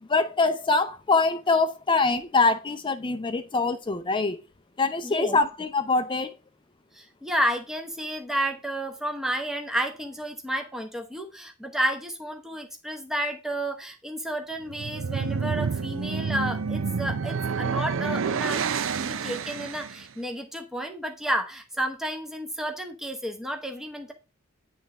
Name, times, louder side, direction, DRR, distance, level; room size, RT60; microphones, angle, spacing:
voice 1, 0.0-4.4 4.8-6.3, left 3 dB, 25° left, 0.5 m, -24 dB
voice 2, 5.0-5.4 6.9-18.6 18.9-24.1, right 1 dB, ahead, 0.9 m, -31 dB
sound 1, 14.6-20.0, right 5 dB, 65° right, 0.5 m, -29 dB
9.4 x 3.5 x 5.2 m
head